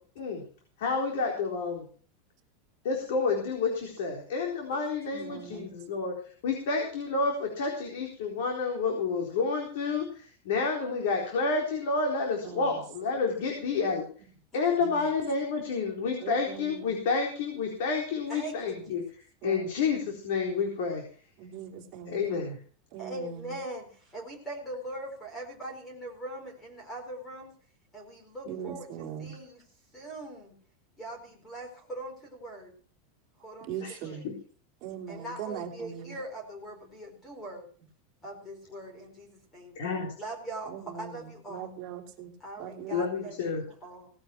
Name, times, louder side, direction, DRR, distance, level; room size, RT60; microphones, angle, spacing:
voice 1, 0.8-1.9 2.8-6.1 6.4-14.0 14.5-19.0 19.4-21.0 22.0-22.6 33.8-34.3 39.8-40.1 42.9-43.6, left 4 dB, 60° left, 1 dB, 4.0 m, -29 dB
voice 2, 5.1-5.7 12.4-12.7 14.8-15.0 16.2-17.0 18.8-18.9 19.4-19.7 21.4-22.4 22.9-23.6 28.5-29.3 33.6-34.2 34.8-36.1 40.7-41.2 41.5-42.3 42.6-43.3, right 8 dB, 25° right, -3 dB, 3.4 m, -40 dB
voice 3, 18.3-19.0 23.0-27.5 27.9-29.6 29.9-30.5 31.0-32.7 33.4-34.3 35.1-37.7 38.2-39.7 40.2-41.7 42.4-44.1, right 1 dB, 10° left, 2 dB, 4.3 m, -41 dB
18.0 x 10.0 x 4.6 m, 0.44 s
supercardioid pair, 180°, 0 cm